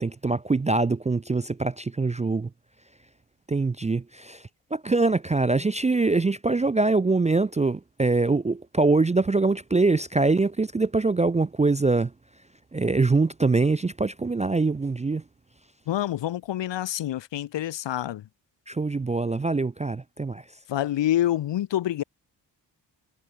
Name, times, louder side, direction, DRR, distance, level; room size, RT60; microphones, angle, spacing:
voice 1, 0.0-2.5 3.5-4.4 4.7-12.1 12.7-15.2 18.7-20.4, right 3 dB, 20° right, 0.3 m, -23 dB
voice 2, 15.9-18.3 20.7-22.0, left 12 dB, 75° left, 0.8 m, -27 dB
wide cardioid pair, 170°, 44 cm